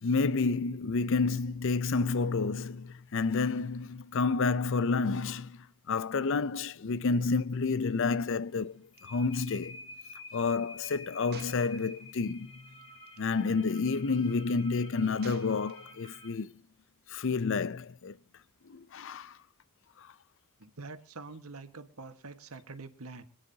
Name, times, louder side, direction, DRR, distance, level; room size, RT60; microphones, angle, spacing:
voice 1, 0.0-9.8 10.3-12.5 13.2-16.5 17.1-18.2 18.6-19.4 20.0-20.1, left 4 dB, 60° left, 0.5 m, -30 dB
sound 1, 8.2-16.3, left 2 dB, 25° left, 3.3 m, -49 dB
Gunshot gunfire, 9.0-9.1 9.3-9.5 11.3-12.3 13.1-13.3 15.2-16.1, right 6 dB, 45° right, 0.6 m, -51 dB
voice 2, 20.6-23.2, right 3 dB, 80° right, 1.5 m, -45 dB
26.0 x 9.7 x 2.8 m
head